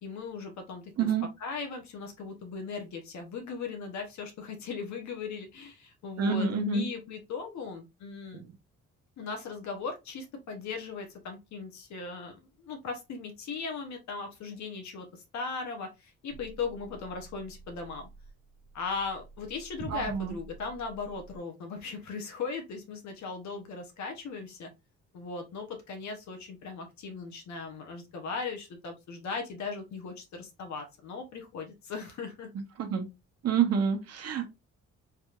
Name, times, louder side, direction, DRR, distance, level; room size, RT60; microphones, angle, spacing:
voice 1, 0.0-1.1 1.4-8.4 9.2-18.1 18.7-24.7 25.1-32.5, left 4 dB, 65° left, 0.9 m, -38 dB
voice 2, 1.0-1.3 6.2-6.9 8.3-8.5 19.9-20.3 32.8-33.1 33.4-34.5, right 6 dB, 55° right, 1.0 m, -28 dB
sound 1, 16.3-21.4, right 4 dB, 35° right, 0.7 m, -48 dB
3.4 x 3.0 x 2.4 m
cardioid pair, 90°, 30 cm